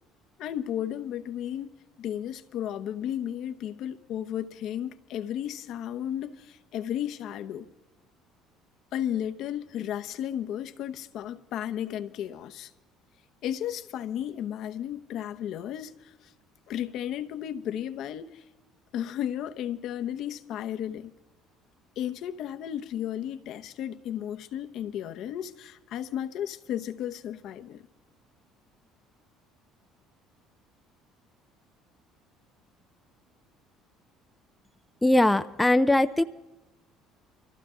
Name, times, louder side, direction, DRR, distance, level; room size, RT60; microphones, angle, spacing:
voice 1, 0.4-1.7 2.0-7.7 8.9-12.7 13.4-16.3 16.7-18.4 18.9-21.1 22.0-27.9, left 10 dB, 65° left, 0.9 m, -34 dB
voice 2, 35.0-36.2, left 1 dB, 10° left, 0.5 m, -21 dB
23.5 x 14.5 x 3.8 m
cardioid pair, 105°, 0 cm